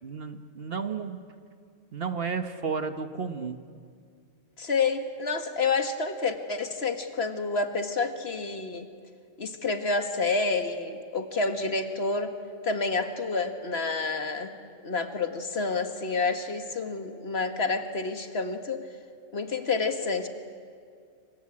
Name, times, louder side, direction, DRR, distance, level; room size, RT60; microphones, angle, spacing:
voice 1, 0.0-1.2 1.9-3.6, right 5 dB, 50° right, 8 dB, 1.4 m, -32 dB
voice 2, 4.6-8.9 9.4-12.3 12.6-14.5 14.8-18.8 19.3-20.3, left 4 dB, 55° left, 6 dB, 2.0 m, -29 dB
28.0 x 24.5 x 8.6 m, 2.2 s
omnidirectional pair, 1.3 m